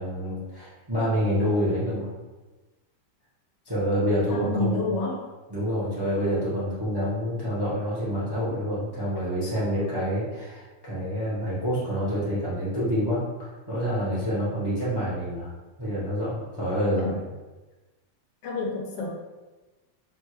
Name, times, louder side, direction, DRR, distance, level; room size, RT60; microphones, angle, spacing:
voice 1, 0.0-2.1 3.6-4.9 5.5-15.5 15.8-17.2, equal, 30° right, -9 dB, 0.4 m, -27 dB
voice 2, 4.3-5.2 17.0-17.2 18.4-19.1, left 3 dB, 90° left, -1 dB, 1.3 m, -29 dB
3.4 x 2.2 x 3.0 m, 1.2 s
omnidirectional pair, 1.8 m